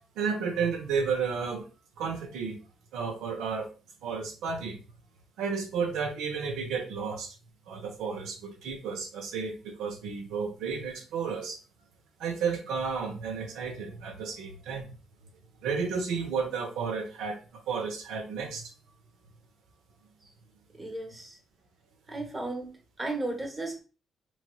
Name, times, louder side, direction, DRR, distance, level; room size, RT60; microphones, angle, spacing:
voice 1, 0.2-1.7 2.0-2.6 2.9-3.7 4.0-4.8 5.4-7.3 7.7-11.6 12.2-14.9 15.6-18.7, right 5 dB, 85° right, 3 dB, 0.6 m, -32 dB
voice 2, 20.8-21.4 22.1-22.7 23.0-23.8, right 2 dB, 20° right, 3 dB, 0.9 m, -34 dB
3.0 x 2.9 x 2.2 m, 0.33 s
cardioid pair, 90°, 0 cm